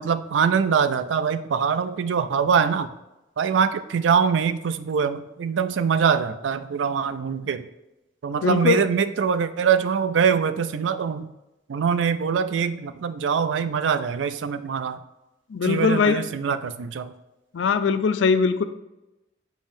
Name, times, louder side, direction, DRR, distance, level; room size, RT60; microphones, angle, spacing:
voice 1, 0.0-2.9 3.4-7.7 8.2-11.3 11.7-15.0 15.6-17.1, right 6 dB, 90° right, 12 dB, 0.4 m, -23 dB
voice 2, 8.4-8.8 15.5-16.2 17.5-18.6, left 5 dB, 90° left, 11 dB, 0.4 m, -21 dB
7.3 x 5.1 x 2.6 m, 0.96 s
head